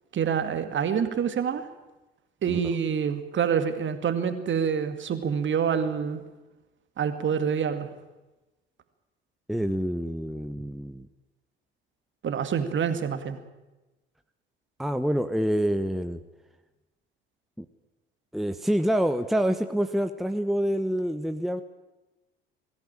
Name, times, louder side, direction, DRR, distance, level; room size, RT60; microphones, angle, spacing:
voice 1, 0.1-1.7 2.4-6.2 7.0-7.9 12.2-13.4, right 7 dB, 40° right, 9 dB, 2.2 m, -26 dB
voice 2, 9.5-11.1 14.8-16.2 17.6-17.7 18.3-21.6, equal, ahead, 8 dB, 1.1 m, -27 dB
22.0 x 15.5 x 8.9 m, 1.1 s
figure-of-eight pair, 55°, 30 cm